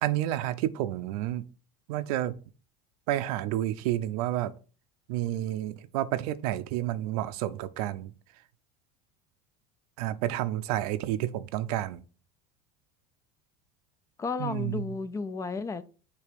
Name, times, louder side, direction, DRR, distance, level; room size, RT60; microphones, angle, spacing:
voice 1, 0.0-1.4 1.9-2.3 3.1-4.5 5.1-8.1 10.0-12.0 14.4-14.8, right 13 dB, 80° right, 0.5 m, -30 dB
voice 2, 14.2-15.8, left 4 dB, 15° left, 0.3 m, -33 dB
6.6 x 2.8 x 5.1 m
supercardioid pair, 135°, 19 cm